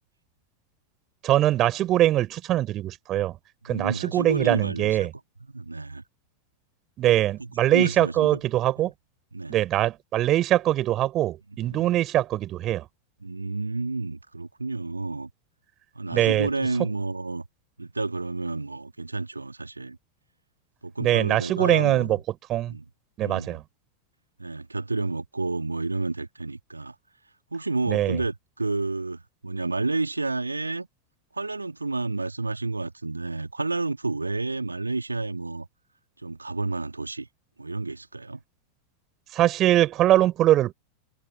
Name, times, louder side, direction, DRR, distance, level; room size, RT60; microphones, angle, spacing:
voice 1, 1.2-3.4 3.6-5.1 7.0-8.9 9.5-12.9 16.1-16.5 21.0-22.2 22.5-22.7 23.2-23.6 27.9-28.2 39.3-40.7, right 13 dB, 35° right, 4.1 m, -22 dB
voice 2, 3.7-5.1 5.5-6.0 7.7-8.4 8.8-8.9 9.3-9.6 11.7-11.9 13.2-15.3 16.0-17.4 17.8-20.0 20.8-22.2 22.7-22.8 23.2-23.6 24.4-27.0 27.5-30.9 31.3-35.7 36.2-37.3 37.6-38.4, right 3 dB, 80° right, 2.1 m, -30 dB
figure-of-eight pair, 90°, 0 cm